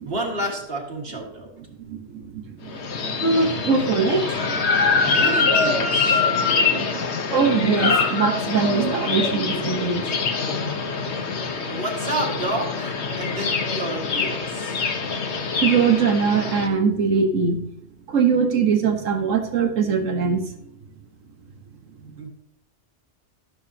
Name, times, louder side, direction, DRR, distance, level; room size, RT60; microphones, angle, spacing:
voice 1, 0.0-1.5 5.0-6.2 10.9-11.3 11.7-14.8 22.2-22.3, right 2 dB, 50° right, 0 dB, 2.1 m, -30 dB
voice 2, 1.8-5.1 6.4-10.1 10.8-11.1 15.6-17.6 18.1-20.4 22.0-22.1, right 5 dB, 90° right, 5 dB, 1.6 m, -22 dB
sound 1, 2.7-16.7, left 4 dB, 65° left, 1.2 m, -24 dB
14.5 x 7.1 x 2.9 m, 0.77 s
omnidirectional pair, 1.3 m